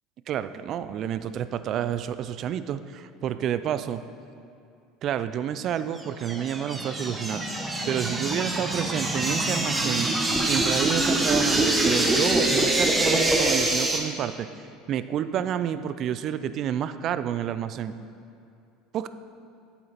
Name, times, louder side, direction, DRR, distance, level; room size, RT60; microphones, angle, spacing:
voice 1, 0.3-4.0 5.0-10.1 10.5-14.5 14.9-17.9 18.9-19.1, right 9 dB, 50° right, 12 dB, 0.4 m, -29 dB
sound 1, 6.0-14.0, right 2 dB, 15° right, 1.1 m, -24 dB
8.4 x 7.2 x 4.1 m, 2.4 s
hypercardioid pair, 85°, 0 cm